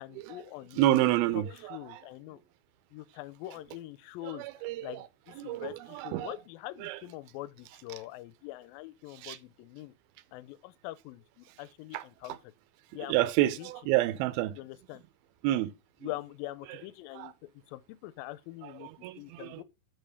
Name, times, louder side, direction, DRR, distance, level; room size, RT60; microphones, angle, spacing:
voice 1, 0.0-1.0 1.3-1.4 1.7-2.4 2.9-4.5 4.8-9.9 10.3-12.4 12.9-13.3 13.6-13.7 14.6-15.0 16.0-17.3 17.7-18.9 19.2-19.6, left 17 dB, 80° left, 2.1 m, -43 dB
voice 2, 0.8-2.0 4.3-5.1 5.4-6.3 6.8-7.0 9.1-9.4 11.9-12.0 13.1-14.6 15.4-15.7 16.0-16.1 16.7-16.8 17.1-17.3 18.6-19.6, right 15 dB, 80° right, 2.5 m, -29 dB
8.2 x 3.8 x 6.8 m
omnidirectional pair, 4.5 m